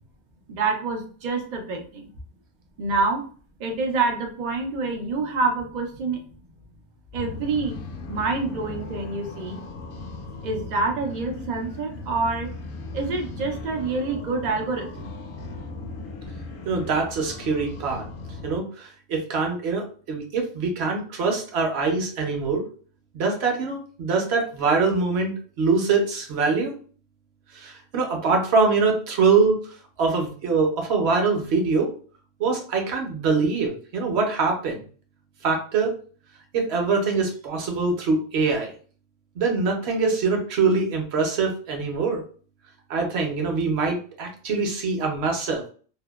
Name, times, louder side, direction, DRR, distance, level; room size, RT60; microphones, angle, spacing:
voice 1, 0.5-2.1 2.8-3.2 3.6-6.2 7.1-7.8 8.1-9.6 10.4-12.5 12.9-15.1, right 3 dB, 85° right, 2 dB, 0.4 m, -27 dB
sound 1, 7.1-18.6, left 3 dB, 65° left, 0.7 m, -38 dB
voice 2, 16.7-18.0 18.4-22.6 23.1-26.7 27.5-29.6 30.0-31.9 32.4-34.8 35.4-35.9 36.5-38.7 39.4-42.2 42.9-45.6, right 4 dB, 60° right, 2 dB, 0.8 m, -23 dB
2.6 x 2.1 x 2.2 m, 0.42 s
omnidirectional pair, 1.4 m